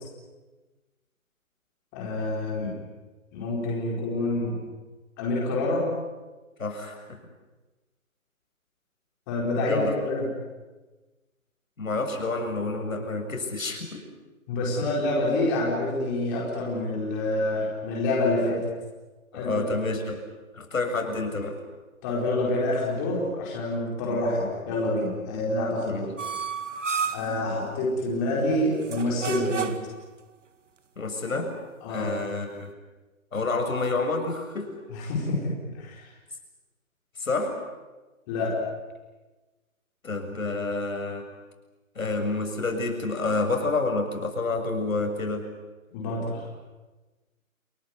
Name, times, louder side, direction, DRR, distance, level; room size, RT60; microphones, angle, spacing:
voice 1, 1.9-2.7 3.3-4.6 5.2-5.9 9.3-10.3 14.5-18.6 19.3-19.6 19.9-20.0 22.0-26.1 27.1-29.7 31.8-32.1 34.9-36.1 38.3-38.6 45.9-46.5, left 2 dB, 15° left, -3 dB, 4.5 m, -27 dB
voice 2, 6.6-7.2 9.6-9.9 11.8-14.0 19.3-20.2 20.5-21.6 24.1-24.2 25.8-26.1 31.0-31.5 31.9-32.7 33.3-34.8 37.2-37.6 40.0-41.3 42.0-45.5, left 3 dB, 70° left, 4 dB, 7.5 m, -29 dB
sound 1, 26.2-27.4 28.8-30.0, right 6 dB, 60° right, 2.3 m, -31 dB
29.5 x 19.5 x 9.6 m, 1.2 s
hypercardioid pair, 175°, 41 cm